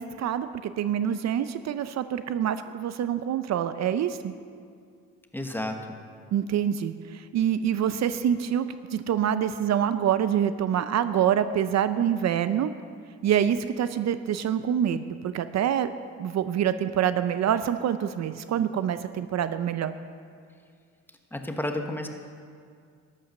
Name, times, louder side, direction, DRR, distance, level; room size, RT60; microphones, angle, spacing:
voice 1, 0.0-4.3 6.3-12.7 13.2-15.9 16.2-19.9, right 9 dB, 60° right, 12 dB, 0.6 m, -26 dB
voice 2, 5.3-5.8 21.3-22.1, left 1 dB, 5° left, 4 dB, 1.2 m, -31 dB
12.5 x 9.1 x 6.6 m, 2.2 s
cardioid pair, 90°, 30 cm